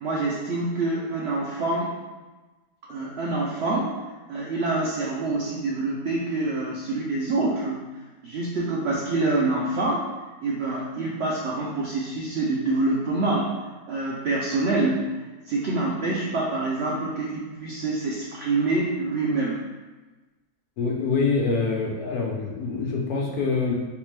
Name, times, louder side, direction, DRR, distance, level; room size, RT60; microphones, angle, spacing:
voice 1, 0.0-1.9 2.9-4.0 4.3-7.8 8.2-10.0 10.4-13.5 13.9-15.1 15.5-19.6, right 2 dB, 90° right, -4 dB, 0.5 m, -26 dB
voice 2, 20.8-23.7, left 4 dB, 70° left, -1 dB, 1.1 m, -25 dB
3.3 x 2.9 x 3.2 m, 1.2 s
omnidirectional pair, 1.7 m